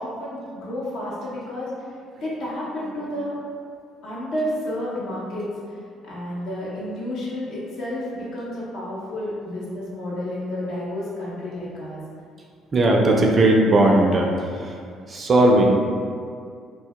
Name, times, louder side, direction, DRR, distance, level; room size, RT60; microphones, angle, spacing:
voice 1, 0.0-1.7 2.2-3.4 4.0-5.8 6.0-12.0, left 1 dB, 65° left, -7 dB, 0.7 m, -31 dB
voice 2, 12.7-14.8 15.1-15.7, right 1 dB, 40° right, 0 dB, 0.4 m, -17 dB
2.1 x 2.1 x 2.8 m, 2.2 s
hypercardioid pair, 55°, 0 cm